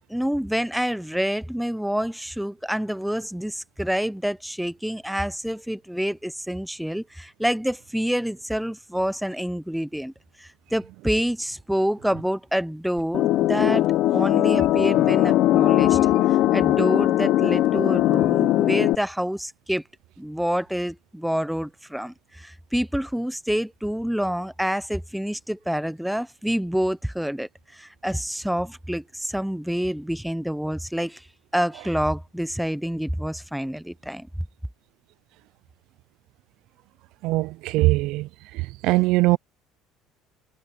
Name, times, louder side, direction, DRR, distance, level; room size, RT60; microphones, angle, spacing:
voice 1, 0.1-10.1 10.4-13.8 14.1-16.0 16.3-19.8 20.2-31.2 31.5-34.3, equal, ahead, 0.8 m, -27 dB
sound 1, 13.1-19.0, left 14 dB, 55° left, 1.0 m, -20 dB
voice 2, 37.2-38.3 38.5-39.4, right 21 dB, 70° right, 0.4 m, -21 dB
cardioid pair, 145°, 0 cm